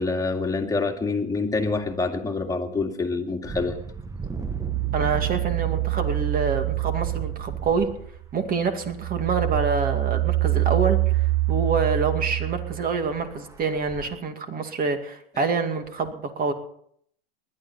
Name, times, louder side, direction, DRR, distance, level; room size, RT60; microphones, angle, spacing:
voice 1, 0.0-3.8, left 3 dB, 10° left, 2 dB, 2.3 m, -26 dB
sound 1, 3.4-14.2, right 4 dB, 10° right, 1.0 m, -39 dB
sound 2, 4.3-8.2 8.6-13.1, right 19 dB, 50° right, 0.4 m, -26 dB
voice 2, 4.9-7.9 8.3-16.5, right 4 dB, 30° right, 7 dB, 2.3 m, -26 dB
20.0 x 11.5 x 4.2 m, 0.67 s
hypercardioid pair, 105°, 30 cm